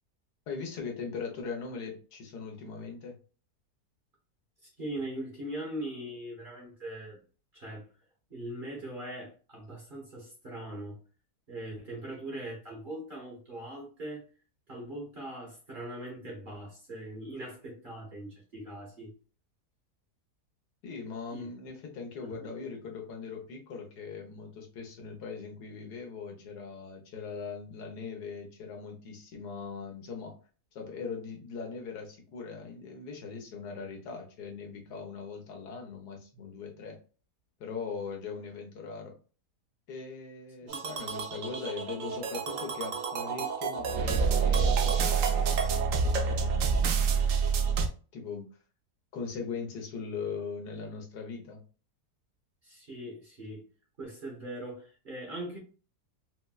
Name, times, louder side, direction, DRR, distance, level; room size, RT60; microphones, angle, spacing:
voice 1, 0.5-3.2 20.8-30.4 30.7-37.0 37.6-39.1 39.9-45.7 46.0-47.2 48.1-48.5 49.1-51.6, left 5 dB, 80° left, 1 dB, 1.4 m, -40 dB
voice 2, 4.6-7.2 7.5-7.9 8.3-11.0 11.5-14.2 14.7-19.1 21.3-21.5 22.2-22.5 40.6-40.8 52.6-53.6 54.0-55.6, right 1 dB, 35° right, -2 dB, 1.1 m, -41 dB
sound 1, 40.7-47.9, right 5 dB, 65° right, 0.9 m, -28 dB
4.2 x 2.1 x 2.3 m, 0.38 s
omnidirectional pair, 1.7 m